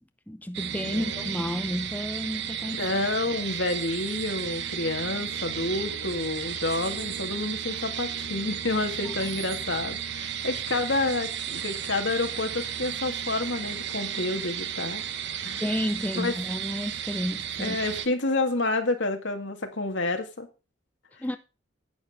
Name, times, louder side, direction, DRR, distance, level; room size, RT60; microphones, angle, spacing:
voice 1, 0.3-2.9 9.0-9.1 15.6-17.8 21.2-21.4, equal, 10° left, 0.6 m, -31 dB
sound 1, 0.5-18.1, right 9 dB, 65° right, 1.0 m, -34 dB
voice 2, 2.8-15.0 15.4-15.6 16.1-16.3 17.6-20.5, left 2 dB, 70° left, 2.0 m, -29 dB
10.5 x 9.0 x 3.6 m
head